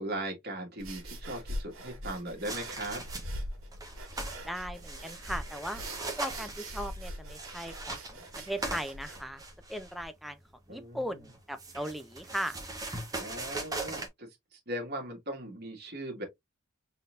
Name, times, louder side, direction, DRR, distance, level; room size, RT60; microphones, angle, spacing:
voice 1, 0.0-3.0 10.7-11.3 13.2-14.3 14.7-16.2, right 1 dB, 50° right, 1.8 m, -38 dB
sound 1, 0.8-10.1, equal, 70° right, 1.8 m, -42 dB
sound 2, 2.4-3.4 3.7-4.4 4.7-9.9 11.2-14.1, right 2 dB, 15° right, 1.1 m, -40 dB
voice 2, 4.4-5.8 6.2-9.4 9.7-10.4 10.7-12.6, equal, ahead, 0.4 m, -38 dB
3.9 x 3.9 x 2.5 m
head